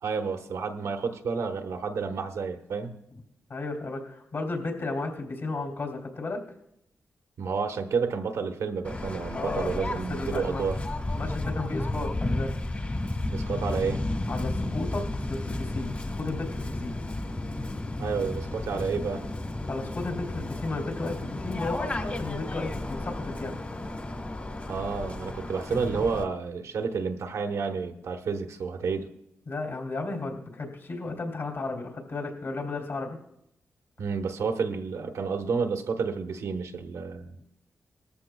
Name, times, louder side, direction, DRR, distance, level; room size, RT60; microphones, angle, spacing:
voice 1, 0.0-3.0 7.4-10.8 13.3-14.0 18.0-19.2 24.7-29.1 34.0-37.4, right 5 dB, 85° right, 5 dB, 1.1 m, -30 dB
voice 2, 3.5-6.4 9.3-9.7 10.1-10.7 11.1-12.6 14.3-16.9 19.7-23.6 29.5-33.2, left 3 dB, 60° left, 1 dB, 3.0 m, -34 dB
Waves surf, 8.8-26.2, left 2 dB, 30° left, 1.4 m, -33 dB
19.0 x 14.0 x 2.3 m, 0.80 s
cardioid pair, 80°, 5 cm